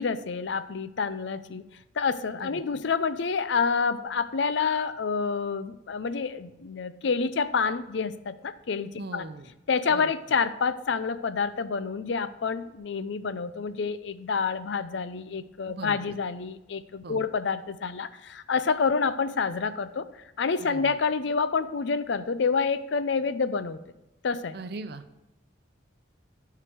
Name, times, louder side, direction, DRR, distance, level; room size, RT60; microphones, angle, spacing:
voice 1, 0.0-1.6 2.0-9.3 9.7-20.1 20.4-23.8 24.2-24.6, left 5 dB, 65° left, 13 dB, 0.5 m, -28 dB
voice 2, 9.0-9.5 9.9-10.0 15.7-16.0 17.0-17.2 20.7-21.0 24.5-25.0, right 3 dB, 55° right, 10 dB, 0.6 m, -39 dB
11.0 x 4.8 x 6.1 m, 0.98 s
head